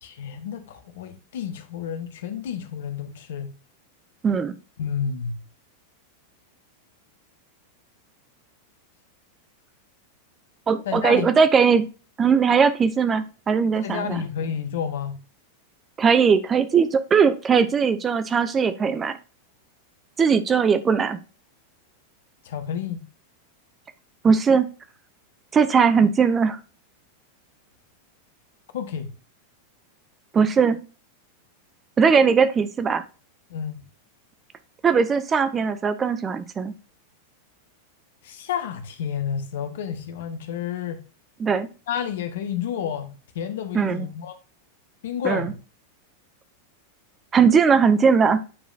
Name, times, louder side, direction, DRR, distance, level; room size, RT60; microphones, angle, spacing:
voice 1, 0.0-3.5 4.8-5.4 10.8-11.3 13.8-15.2 22.4-23.0 28.7-29.1 33.5-33.8 38.2-41.0 41.9-44.4 45.0-45.6, left 8 dB, 55° left, 1.0 m, -30 dB
voice 2, 4.2-4.5 10.7-11.8 12.2-14.2 16.0-19.2 20.2-21.2 24.2-24.6 25.5-26.6 30.3-30.8 32.0-33.0 34.8-36.7 41.4-41.7 43.7-44.1 45.2-45.5 47.3-48.4, right 6 dB, 20° right, 0.6 m, -19 dB
8.8 x 5.0 x 2.5 m
figure-of-eight pair, 90°, 0 cm